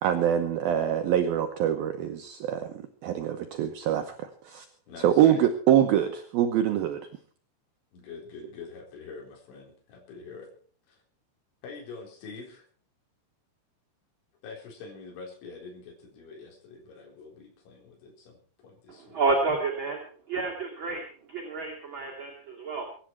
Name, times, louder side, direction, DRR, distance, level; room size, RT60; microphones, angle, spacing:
voice 1, 0.0-2.7 3.0-4.7 5.0-7.0, right 10 dB, 80° right, 6 dB, 2.2 m, -24 dB
voice 2, 4.9-5.3 7.9-10.5 10.9-11.0 11.6-12.7 14.4-19.2, left 4 dB, 70° left, 0 dB, 6.6 m, -45 dB
voice 3, 19.1-20.0 20.3-21.0 21.3-22.9, right 3 dB, 30° right, -1 dB, 2.6 m, -29 dB
23.0 x 11.5 x 4.6 m, 0.43 s
omnidirectional pair, 5.6 m